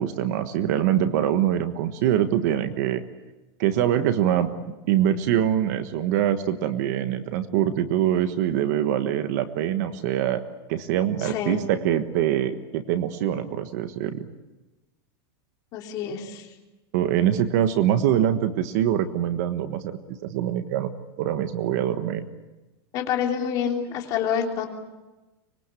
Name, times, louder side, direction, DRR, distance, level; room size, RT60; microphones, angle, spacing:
voice 1, 0.0-3.0 3.6-4.5 4.9-10.4 10.7-14.2 16.9-20.9 21.2-22.2, right 10 dB, 40° right, 9 dB, 1.4 m, -24 dB
voice 2, 11.2-11.6 15.7-16.5 22.9-24.7, left 8 dB, 30° left, 1 dB, 3.4 m, -27 dB
25.0 x 22.0 x 8.4 m, 1.1 s
supercardioid pair, 175°, 13 cm